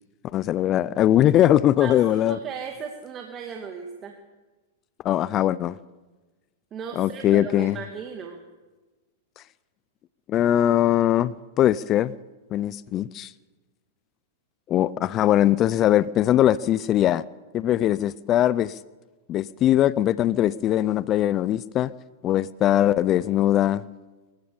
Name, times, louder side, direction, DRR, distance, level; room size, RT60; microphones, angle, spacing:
voice 1, 0.3-2.4 5.0-5.7 7.0-7.8 10.3-12.1 12.5-13.3 14.7-17.2 17.5-18.8 19.3-21.9 22.2-23.8, left 12 dB, 35° left, 0.5 m, -21 dB
voice 2, 1.8-4.1 6.7-8.4, right 6 dB, 30° right, 2.2 m, -36 dB
23.0 x 16.0 x 7.1 m
hypercardioid pair, 115°, 0 cm